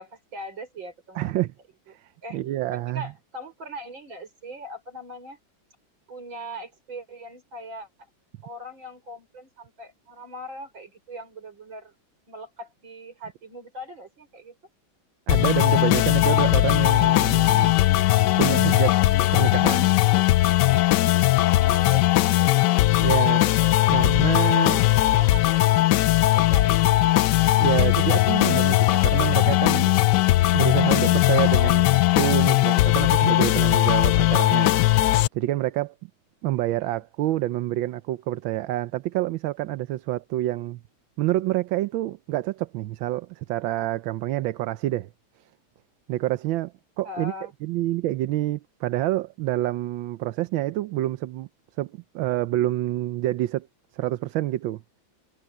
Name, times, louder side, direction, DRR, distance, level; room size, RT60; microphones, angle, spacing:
voice 1, 0.0-1.3 2.2-2.4 2.7-5.4 6.1-7.9 8.4-11.9 12.3-14.5 21.7-23.7 24.5-25.6 25.9-26.9 31.0-31.3 36.5-37.0 47.0-47.5, equal, 75° right, 6.5 m, -40 dB
voice 2, 1.1-1.5 1.9-3.1 15.3-17.7 18.4-19.0 19.3-19.9 23.0-23.4 23.9-24.8 27.5-29.9 30.5-34.9 35.3-35.9 36.4-40.8 41.2-45.1 46.1-47.3 47.6-51.5 51.8-53.7 53.9-54.8, right 15 dB, 90° right, 1.4 m, -27 dB
sound 1, 15.3-35.3, left 16 dB, 75° left, 1.1 m, -19 dB
omnidirectional pair, 2.1 m